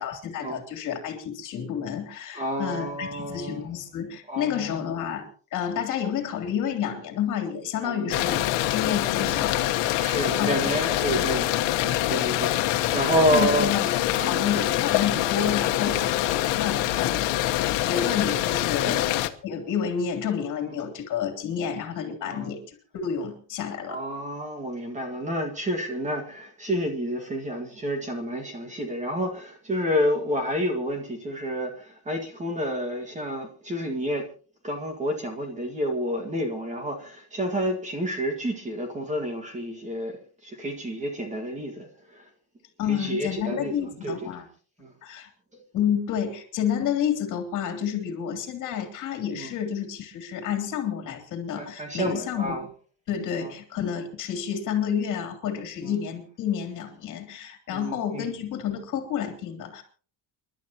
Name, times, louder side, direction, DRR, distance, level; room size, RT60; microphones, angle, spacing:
voice 1, 0.0-8.4 8.7-9.7 10.4-10.7 11.1-11.2 13.3-17.3 17.8-19.1 19.4-22.6 22.9-24.0 42.8-44.4 45.0-45.3 45.7-52.5 53.1-59.8, left 8 dB, 45° left, 3.2 m, -30 dB
voice 2, 2.3-3.7 4.3-4.8 7.8-8.4 9.2-9.4 10.0-11.5 11.8-13.7 14.1-14.6 15.8-16.2 17.3-17.5 18.8-19.0 22.2-22.5 23.9-34.3 34.6-42.3 42.9-44.3 44.8-44.9 49.4-49.5 51.5-52.7 53.4-53.5 55.8-55.9 57.7-58.3, equal, 15° right, 1.9 m, -29 dB
sound 1, 8.1-19.3, left 14 dB, 90° left, 1.3 m, -25 dB
29.0 x 12.0 x 3.0 m
cardioid pair, 180°, 43 cm